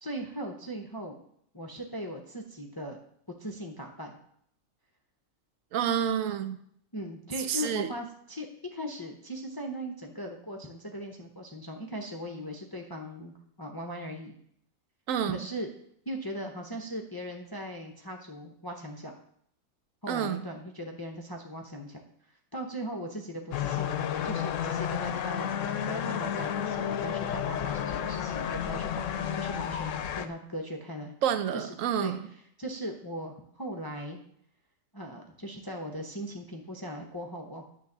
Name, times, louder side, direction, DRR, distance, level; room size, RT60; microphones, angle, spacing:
voice 1, 0.0-1.2 1.5-3.0 3.4-4.2 6.9-14.3 15.2-15.7 16.1-19.2 20.0-22.0 22.5-23.9 24.2-31.1 31.5-32.1 32.6-34.2 34.9-37.7, equal, 25° left, 2 dB, 0.6 m, -39 dB
voice 2, 5.7-6.6 7.5-7.9 15.1-15.5 20.1-20.4 31.2-32.3, right 9 dB, 75° right, 10 dB, 1.0 m, -29 dB
sound 1, 23.5-30.3, left 9 dB, 70° left, 0.9 m, -31 dB
9.5 x 3.3 x 6.5 m, 0.68 s
omnidirectional pair, 1.4 m